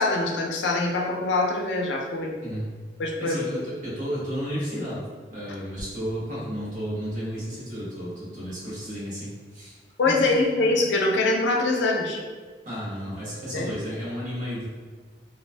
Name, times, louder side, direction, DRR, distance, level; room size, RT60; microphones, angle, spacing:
voice 1, 0.0-2.3 3.0-3.4 10.0-12.2 13.5-13.7, left 2 dB, 85° left, 1 dB, 0.4 m, -23 dB
voice 2, 3.2-5.0 5.3-9.8 10.0-10.3 12.6-14.7, equal, 45° right, -8 dB, 0.9 m, -32 dB
2.3 x 2.2 x 2.5 m, 1.5 s
head